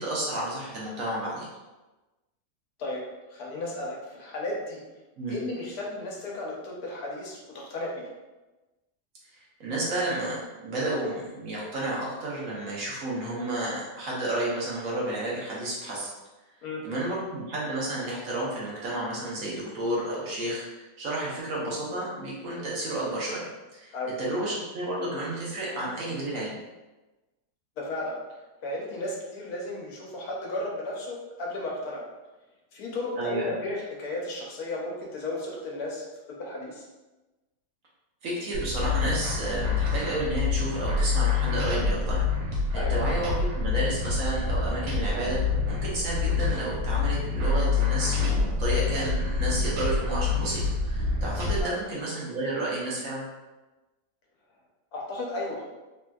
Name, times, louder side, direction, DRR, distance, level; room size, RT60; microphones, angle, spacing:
voice 1, 0.0-1.4 5.2-5.3 9.3-16.1 16.8-23.4 23.7-23.9 24.2-26.5 33.1-33.5 38.2-42.3 42.7-45.4 45.7-53.2, right 1 dB, 65° right, -5 dB, 1.1 m, -31 dB
voice 2, 3.3-4.8 5.3-8.1 16.6-16.8 23.9-24.1 27.8-28.2 28.6-32.0 32.7-36.8 42.7-42.9 51.6-51.7 54.9-55.7, left 2 dB, 75° left, -2 dB, 1.2 m, -34 dB
sound 1, 38.5-51.6, left 4 dB, 85° right, 1.2 m, -27 dB
3.3 x 2.6 x 2.3 m, 1.1 s
omnidirectional pair, 1.7 m